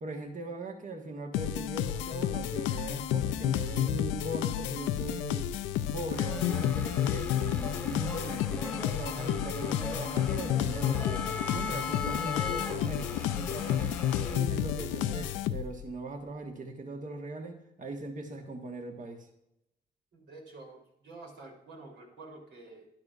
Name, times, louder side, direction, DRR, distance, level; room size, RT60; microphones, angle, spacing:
voice 1, 0.0-5.5 5.9-13.9 14.3-19.3, right 2 dB, 45° right, 4 dB, 1.5 m, -40 dB
sound 1, 1.3-15.9, left 11 dB, 90° left, 0.4 m, -31 dB
sound 2, 6.1-14.4, left 4 dB, 10° left, 1.3 m, -39 dB
voice 2, 20.1-22.9, right 3 dB, 75° right, -1 dB, 3.5 m, -49 dB
11.0 x 11.0 x 2.5 m, 0.81 s
supercardioid pair, 65°, 19 cm